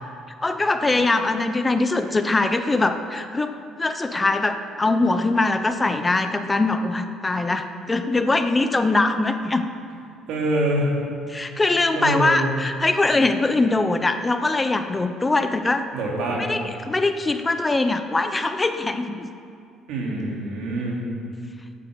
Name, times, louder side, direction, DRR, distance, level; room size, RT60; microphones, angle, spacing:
voice 1, 0.4-3.5 3.8-9.6 11.3-15.9 16.4-19.3, left 2 dB, 15° left, 8 dB, 0.6 m, -22 dB
voice 2, 10.3-10.9 11.9-12.5 15.9-16.5 19.9-21.0, right 1 dB, 80° right, -2 dB, 2.7 m, -25 dB
9.9 x 8.5 x 7.9 m, 2.4 s
cardioid pair, 115°, 0 cm